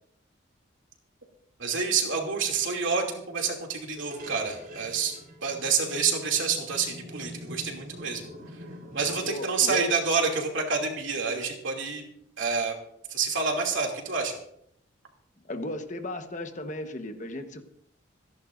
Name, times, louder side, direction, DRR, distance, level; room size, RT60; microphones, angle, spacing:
voice 1, 1.6-5.1 5.4-8.2 8.9-12.0 12.4-12.8 13.1-14.4, right 5 dB, 80° right, 2 dB, 2.7 m, -28 dB
sound 1, 4.0-9.3, equal, 50° right, 4.4 m, -44 dB
voice 2, 9.3-9.9 15.5-17.6, left 1 dB, 40° left, 6 dB, 1.2 m, -35 dB
27.0 x 11.0 x 2.6 m, 0.72 s
head